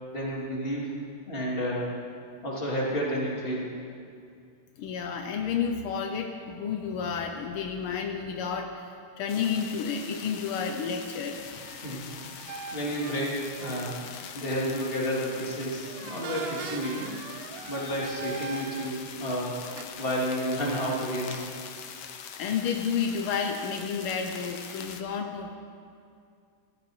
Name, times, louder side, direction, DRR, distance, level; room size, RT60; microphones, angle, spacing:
voice 1, 0.1-0.9 1.3-1.9 2.4-3.7 11.8-12.0 12.5-13.9 14.3-17.2 17.7-19.6 20.0-21.4, equal, 25° left, -5 dB, 2.9 m, -31 dB
voice 2, 4.8-11.5 17.7-17.9 22.4-25.5, left 6 dB, 80° left, 4 dB, 1.7 m, -31 dB
sound 1, 9.3-25.0, left 7 dB, 60° left, 1.3 m, -43 dB
sound 2, 11.6-14.2 14.7-15.0 15.9-19.2 19.6-19.8, right 6 dB, 90° right, 1.7 m, -41 dB
14.0 x 12.5 x 6.3 m, 2.4 s
omnidirectional pair, 2.4 m